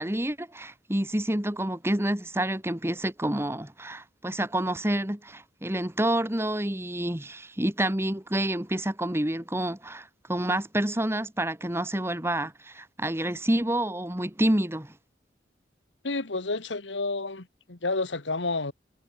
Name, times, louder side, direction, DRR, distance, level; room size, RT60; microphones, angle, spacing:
voice 1, 0.0-14.9, right 1 dB, 15° right, 1.9 m, -28 dB
voice 2, 16.0-18.7, left 3 dB, 90° left, 1.9 m, -30 dB
head